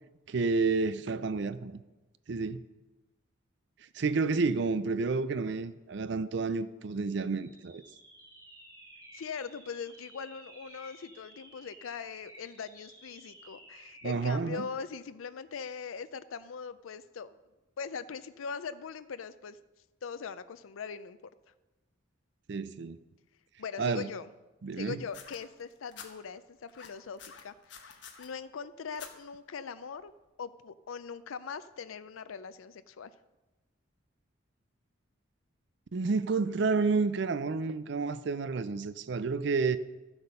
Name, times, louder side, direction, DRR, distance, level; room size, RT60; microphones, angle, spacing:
voice 1, 0.3-1.8 2.3-2.6 3.9-7.8 14.0-14.6 22.5-23.0 23.8-24.1 24.6-25.0 35.9-39.8, right 4 dB, 60° right, 0.4 m, -30 dB
sound 1, 7.3-14.3, right 1 dB, 20° right, 2.1 m, -54 dB
voice 2, 9.1-17.4 17.8-19.6 20.0-21.3 23.6-24.3 24.8-30.1 30.4-33.1, left 6 dB, 85° left, 0.5 m, -41 dB
sound 2, 25.1-26.1 26.7-28.3 28.9-29.1 30.1-30.2, left 7 dB, 60° left, 1.3 m, -48 dB
13.5 x 7.9 x 5.5 m
head